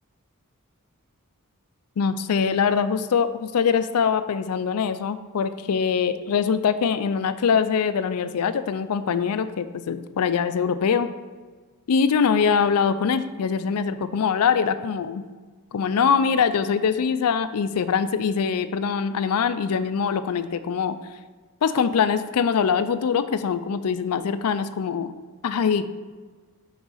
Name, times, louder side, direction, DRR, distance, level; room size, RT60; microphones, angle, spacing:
voice 1, 2.0-11.1 11.9-15.2 15.7-21.0 21.6-25.1 25.4-25.9, left 6 dB, 90° left, 12 dB, 0.4 m, -23 dB
6.1 x 3.9 x 5.6 m, 1.4 s
head